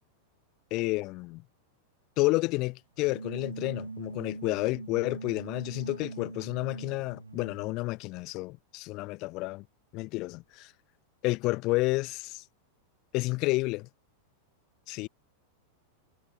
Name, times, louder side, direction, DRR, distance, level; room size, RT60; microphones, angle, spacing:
voice 1, 0.7-1.4 2.2-9.7 9.9-10.7 11.2-12.4 13.1-13.9 14.9-15.1, left 22 dB, 40° left, 0.4 m, -30 dB
sound 1, 3.0-7.8, right 4 dB, 80° right, 0.3 m, -42 dB
figure-of-eight pair, 90°, 0 cm